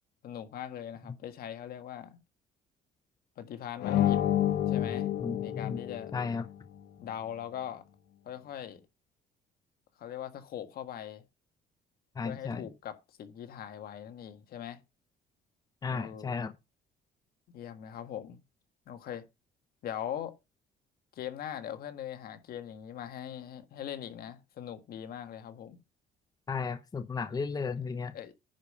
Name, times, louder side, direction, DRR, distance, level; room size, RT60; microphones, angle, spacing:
voice 1, 0.2-2.2 3.4-4.2 4.7-5.1 5.4-6.1 7.0-7.8 8.3-8.8 10.0-11.2 12.2-14.8 15.8-16.4 17.5-18.4 18.9-19.2 19.8-20.3 21.2-25.8 28.1-28.3, left 10 dB, 65° left, 1.6 m, -41 dB
sound 1, 3.8-6.5, left 11 dB, 80° left, 1.4 m, -29 dB
voice 2, 5.2-5.8 6.1-6.4 12.2-12.7 15.8-16.5 26.5-28.1, left 5 dB, 20° left, 0.8 m, -34 dB
10.0 x 5.1 x 5.4 m
cardioid pair, 110°, 17 cm